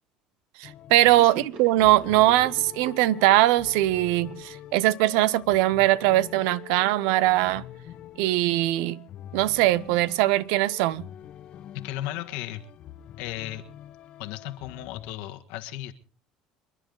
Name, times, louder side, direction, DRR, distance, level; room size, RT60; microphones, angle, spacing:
sound 1, 0.6-15.1, left 12 dB, 55° left, 1.0 m, -45 dB
voice 1, 0.6-7.6 8.2-9.0 9.3-11.1, right 16 dB, 80° right, 0.6 m, -21 dB
Gurgling / Sink (filling or washing), 1.1-5.6, right 4 dB, 60° right, 2.4 m, -44 dB
voice 2, 11.8-12.6 13.2-13.6 14.2-15.9, left 14 dB, 80° left, 1.5 m, -35 dB
27.5 x 10.0 x 3.9 m
supercardioid pair, 95°, 2 cm